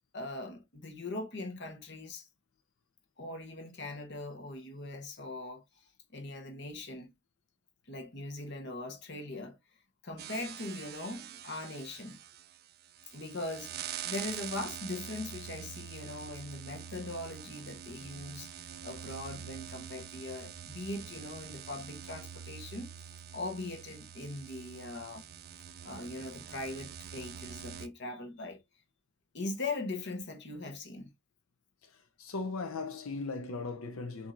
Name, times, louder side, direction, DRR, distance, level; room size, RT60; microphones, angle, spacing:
voice 1, 0.1-2.3 3.2-5.6 6.1-7.1 7.9-9.6 10.0-12.2 13.1-13.7 14.0-18.5 18.8-25.2 25.8-28.6 29.3-31.1, left 2 dB, 55° left, 1.0 m, -40 dB
sound 1, 10.2-27.9, right 9 dB, 50° right, 0.4 m, -45 dB
voice 2, 31.8-34.3, left 3 dB, 90° left, 0.6 m, -38 dB
7.1 x 2.7 x 2.5 m
head